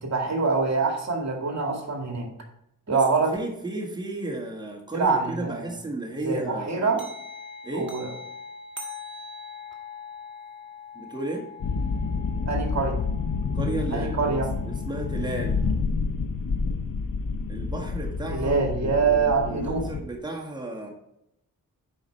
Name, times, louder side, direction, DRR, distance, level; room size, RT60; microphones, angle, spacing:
voice 1, 0.0-2.3 2.9-3.4 4.9-5.7 6.2-7.0 7.7-8.1 12.5-13.0 13.9-14.5 18.3-19.9, right 4 dB, 50° right, 2 dB, 1.9 m, -25 dB
voice 2, 3.3-7.0 7.6-7.9 10.9-11.5 13.5-15.6 17.5-18.6 18.8-20.9, right 2 dB, 10° right, -1 dB, 1.8 m, -33 dB
sound 1, 7.0-15.6, left 4 dB, 35° right, 1.6 m, -43 dB
sound 2, 11.6-20.0, left 4 dB, 65° left, 0.9 m, -29 dB
10.0 x 4.8 x 4.4 m, 0.82 s
wide cardioid pair, 75°, 35 cm